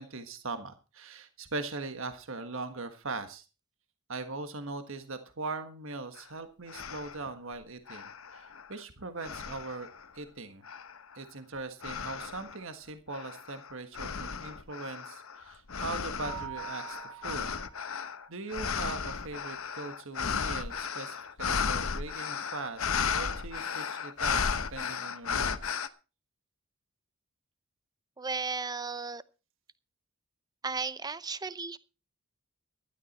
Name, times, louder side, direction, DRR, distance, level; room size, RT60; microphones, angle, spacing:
voice 1, 0.0-3.4 4.1-9.9 10.1-10.6 11.1-17.5 18.3-24.4 24.7-25.6, right 3 dB, 65° right, 8 dB, 1.5 m, -40 dB
sound 1, 6.2-6.3 6.7-7.3 7.9-8.8 9.2-10.1 10.7-11.2 11.8-12.6 13.1-25.9, left 6 dB, 70° left, 1.0 m, -34 dB
Mallet percussion, 16.2-18.0, right 12 dB, 85° right, 4.5 m, -44 dB
voice 2, 28.2-29.2 30.6-31.8, right 4 dB, 20° right, 16 dB, 0.7 m, -35 dB
15.5 x 12.0 x 4.2 m, 0.33 s
head